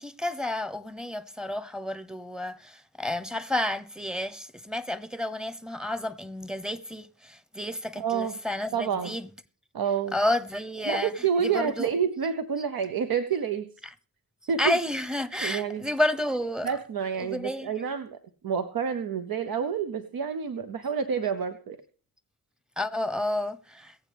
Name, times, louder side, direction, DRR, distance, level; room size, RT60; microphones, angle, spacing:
voice 1, 0.0-9.3 10.1-11.1 11.4-11.9 14.6-16.7 17.2-17.7 22.8-23.9, left 1 dB, ahead, 0.8 m, -30 dB
voice 2, 8.0-8.4 8.7-9.2 9.7-10.2 10.8-13.7 14.5-14.8 15.4-15.9 16.6-18.2 18.4-21.8, right 7 dB, 70° right, 0.8 m, -28 dB
22.0 x 7.4 x 3.4 m
cardioid pair, 50°, 37 cm